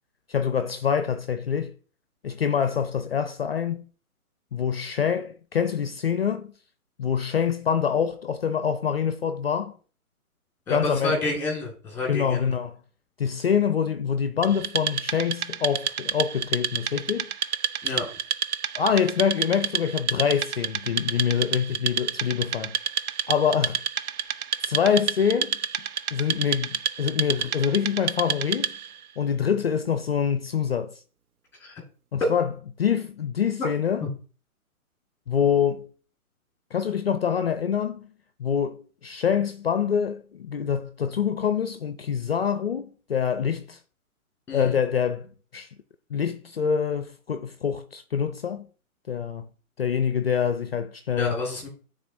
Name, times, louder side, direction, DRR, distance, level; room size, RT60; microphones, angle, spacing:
voice 1, 0.3-1.8 2.2-3.9 4.5-6.5 7.0-9.8 10.7-11.3 12.1-12.8 13.2-17.3 18.7-22.8 23.3-23.8 24.6-25.6 26.1-28.8 29.2-30.9 32.1-32.5 32.8-34.0 35.3-35.9 36.7-38.1 38.4-43.8 44.5-45.7 46.1-48.6 49.1-49.5 49.8-51.3, left 7 dB, 45° left, 0.4 m, -25 dB
voice 2, 10.7-12.5 17.8-18.1 31.6-31.8 34.0-34.1 44.5-44.8 51.2-51.7, left 2 dB, 5° left, 1.7 m, -29 dB
Wood, 14.4-29.0, right 8 dB, 80° right, 0.6 m, -29 dB
10.0 x 3.7 x 2.6 m
hypercardioid pair, 150°, 44 cm